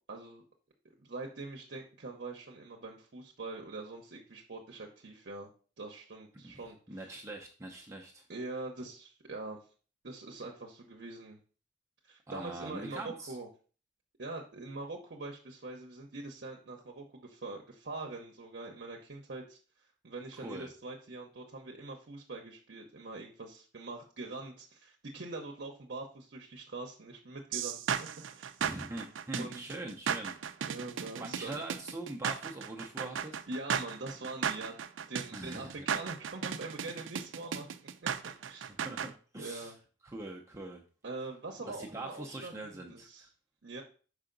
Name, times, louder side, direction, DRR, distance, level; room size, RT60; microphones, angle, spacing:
voice 1, 0.1-0.4 0.8-5.5 5.8-7.1 8.3-9.6 10.0-11.4 12.0-13.5 14.2-28.5 29.4-29.6 30.7-31.6 33.5-37.7 38.0-38.1 38.4-38.7 39.4-39.8 41.0-43.3 43.6-43.8, right 2 dB, 60° right, 0 dB, 0.8 m, -43 dB
voice 2, 6.4-8.2 12.3-13.4 20.4-20.7 28.6-30.3 31.2-33.4 35.3-35.8 38.8-39.7 40.0-40.8 41.7-43.3, right 2 dB, 15° right, 0 dB, 0.6 m, -43 dB
sound 1, 27.5-39.1, right 7 dB, 80° right, 0.4 m, -35 dB
5.6 x 4.8 x 3.8 m, 0.38 s
head